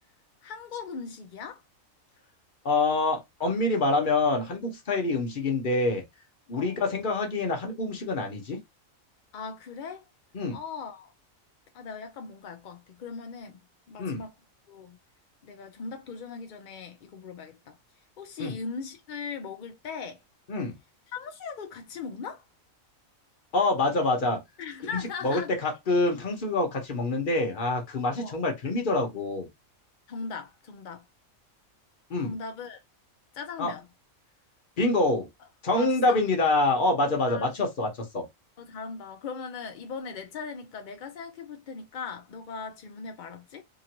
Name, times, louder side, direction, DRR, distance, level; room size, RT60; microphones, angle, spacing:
voice 1, 0.4-1.6 6.5-6.8 9.3-10.1 10.5-11.1 11.7-13.6 13.9-14.3 14.7-15.0 15.4-17.8 18.2-20.2 21.1-22.5 24.6-25.6 28.2-28.4 30.1-31.0 32.2-32.8 33.3-33.8 35.7-36.2 37.3-37.5 38.6-43.6, left 5 dB, 65° left, 0.5 m, -39 dB
voice 2, 2.6-6.0 6.5-8.6 10.3-10.6 14.0-14.2 18.4-18.5 20.5-20.8 23.5-24.4 24.9-29.5 32.1-32.3 33.6-33.7 34.8-35.3 35.6-38.3, left 2 dB, 45° left, 0.9 m, -26 dB
2.9 x 2.5 x 2.8 m
omnidirectional pair, 1.4 m